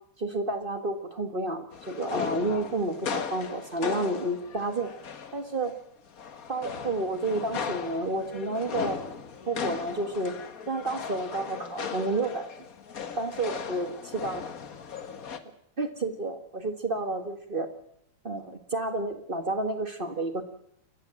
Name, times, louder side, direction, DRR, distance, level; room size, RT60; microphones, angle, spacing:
voice 1, 0.2-4.9 5.3-5.7 6.5-9.0 9.5-10.3 10.7-12.5 13.2-14.4 15.8-17.7 18.2-20.4, right 2 dB, 30° right, 7 dB, 0.9 m, -30 dB
sound 1, 1.7-5.7 6.1-15.4, left 6 dB, 50° left, 1.1 m, -37 dB
28.5 x 14.0 x 7.6 m, 0.74 s
omnidirectional pair, 3.3 m